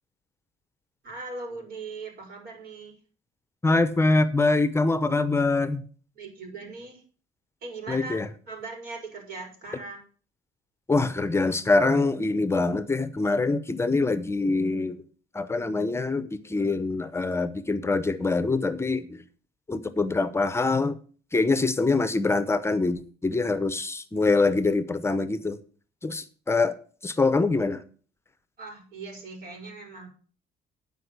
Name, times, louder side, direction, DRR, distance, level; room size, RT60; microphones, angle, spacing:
voice 1, 1.0-3.0 6.1-7.0 7.6-8.2 8.5-10.0 28.6-30.1, right 3 dB, 60° right, 5.4 m, -39 dB
voice 2, 3.6-5.8 7.9-8.3 10.9-15.0 15.3-19.1 19.7-21.0 21.3-25.6 26.0-26.8 27.0-27.8, left 3 dB, 15° left, 0.8 m, -24 dB
9.7 x 5.3 x 8.0 m
cardioid pair, 110°, 17 cm